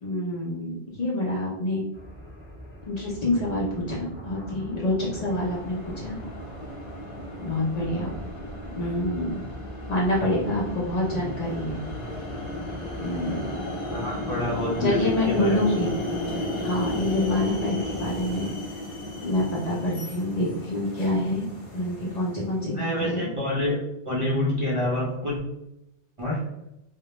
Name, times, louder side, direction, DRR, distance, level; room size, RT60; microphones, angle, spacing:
voice 1, 0.0-1.8 2.9-6.2 7.4-8.1 8.7-9.5 9.9-11.8 13.0-13.4 14.8-15.9 16.6-18.5 19.2-21.5 21.7-23.3, left 1 dB, 50° left, -5 dB, 0.5 m, -27 dB
sound 1, 1.9-18.5, left 1 dB, 15° left, 0.8 m, -40 dB
sound 2, 5.2-22.7, left 1 dB, 75° left, 1.0 m, -35 dB
voice 2, 7.9-8.2 13.9-15.1 15.4-15.7 22.7-23.8 24.1-25.4 26.2-26.4, left 1 dB, 45° right, -6 dB, 0.4 m, -27 dB
2.1 x 2.1 x 2.8 m, 0.87 s
omnidirectional pair, 1.0 m